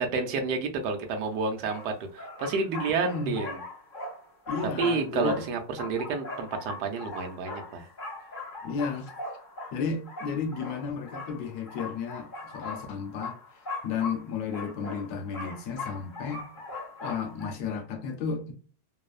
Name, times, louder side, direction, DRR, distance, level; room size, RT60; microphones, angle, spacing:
voice 1, 0.0-3.6 4.8-7.9, right 4 dB, 75° right, 1.1 m, -30 dB
sound 1, 0.9-1.0 1.7-17.5, left 3 dB, 40° left, 0.8 m, -40 dB
voice 2, 3.0-3.4 4.5-5.4 8.6-9.1 9.7-12.3 12.5-13.4 13.8-16.5 17.0-18.5, left 5 dB, 70° left, 1.1 m, -33 dB
3.0 x 2.0 x 2.3 m
omnidirectional pair, 1.9 m